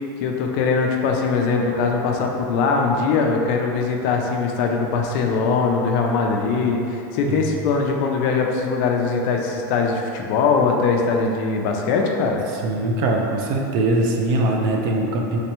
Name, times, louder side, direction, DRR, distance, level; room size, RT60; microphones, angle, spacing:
voice 1, 0.2-12.4, left 4 dB, 45° left, 1 dB, 0.4 m, -21 dB
voice 2, 12.6-15.4, right 2 dB, 40° right, 1 dB, 0.4 m, -22 dB
3.2 x 3.2 x 2.9 m, 2.7 s
supercardioid pair, 155°, 11 cm